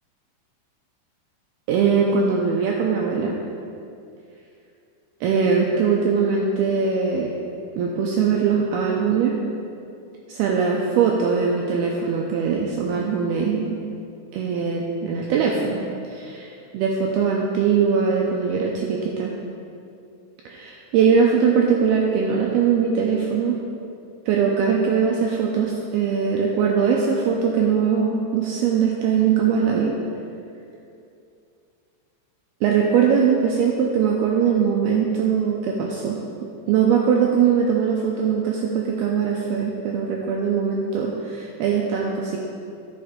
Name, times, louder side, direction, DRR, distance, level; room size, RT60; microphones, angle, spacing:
voice 1, 1.7-3.4 5.2-7.3 7.8-9.3 10.3-13.7 14.3-15.8 16.7-19.3 20.5-23.6 24.3-30.0 32.6-36.2 36.7-42.4, right 6 dB, 85° right, -1 dB, 2.3 m, -21 dB
12.0 x 5.9 x 5.1 m, 2.6 s
omnidirectional pair, 5.2 m